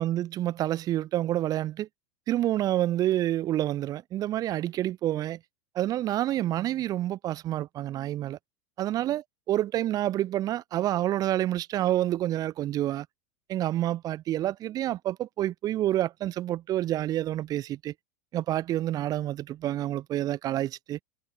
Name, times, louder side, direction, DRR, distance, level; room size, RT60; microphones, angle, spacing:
voice 1, 0.0-1.9 2.3-5.4 5.7-8.4 8.8-13.1 13.5-17.9 18.3-21.0, right 13 dB, 40° right, 0.8 m, -28 dB
hypercardioid pair, 85°, 10 cm